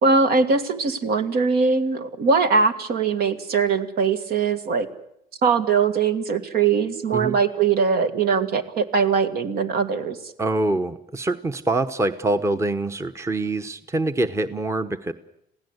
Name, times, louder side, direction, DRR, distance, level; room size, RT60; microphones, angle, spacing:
voice 1, 0.0-4.9 5.4-10.2, right 5 dB, 65° right, 9 dB, 1.9 m, -21 dB
voice 2, 10.4-15.1, right 2 dB, 15° right, 10 dB, 1.0 m, -25 dB
27.0 x 16.5 x 8.1 m, 0.77 s
cardioid pair, 110°, 17 cm